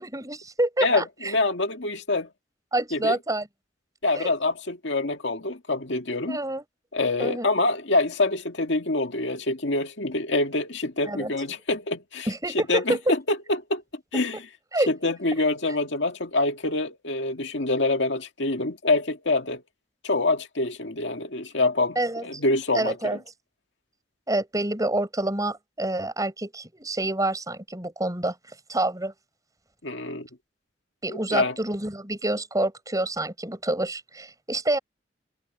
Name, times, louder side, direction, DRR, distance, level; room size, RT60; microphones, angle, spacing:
voice 1, 0.0-1.3 2.7-3.5 4.2-4.3 6.3-6.6 7.2-7.5 11.1-11.3 12.3-13.1 14.7-14.9 15.4-15.5 21.9-22.4 22.7-23.2 24.3-28.4 28.7-29.1 31.0-34.8, right 1 dB, 20° right, 6.8 m, -27 dB
voice 2, 0.8-2.3 2.9-3.2 4.0-6.4 6.9-12.3 12.5-13.8 14.1-14.4 14.9-19.6 20.0-23.2 29.8-30.3 31.1-31.5, left 2 dB, 75° left, 2.0 m, -26 dB
head